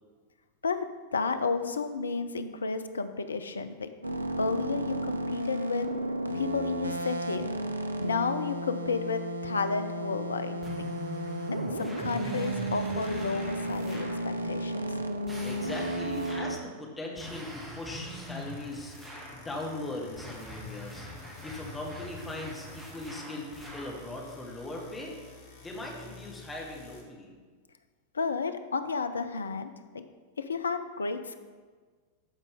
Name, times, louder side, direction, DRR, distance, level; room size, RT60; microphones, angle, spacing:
voice 1, 0.6-3.9 4.4-5.9 6.3-7.4 8.0-10.6 11.5-14.9 28.1-30.0 30.4-31.4, left 4 dB, 75° left, 10 dB, 0.5 m, -32 dB
sound 1, 4.0-16.6, right 1 dB, 80° right, 0.5 m, -33 dB
sound 2, 10.6-14.3 15.3-16.7 17.2-19.4 20.2-24.0, equal, 15° right, 1.7 m, -43 dB
voice 2, 15.4-25.2 25.6-27.3, left 2 dB, 10° left, -2 dB, 1.7 m, -40 dB
sound 3, 17.8-27.0, left 4 dB, 60° left, 1.6 m, -49 dB
12.5 x 5.1 x 3.6 m, 1.5 s
figure-of-eight pair, 90°, 0 cm